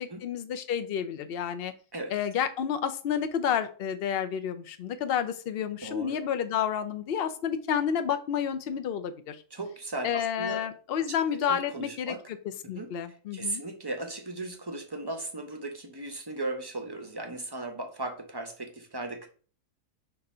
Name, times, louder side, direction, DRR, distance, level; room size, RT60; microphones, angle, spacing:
voice 1, 0.0-1.7 2.1-9.4 10.0-12.4 12.7-13.6, left 8 dB, 60° left, 9 dB, 0.6 m, -30 dB
voice 2, 5.8-6.2 9.5-10.6 11.0-11.1 11.3-12.2 12.7-19.3, right 2 dB, 25° right, 5 dB, 0.6 m, -37 dB
6.7 x 2.5 x 5.5 m, 0.41 s
omnidirectional pair, 1.7 m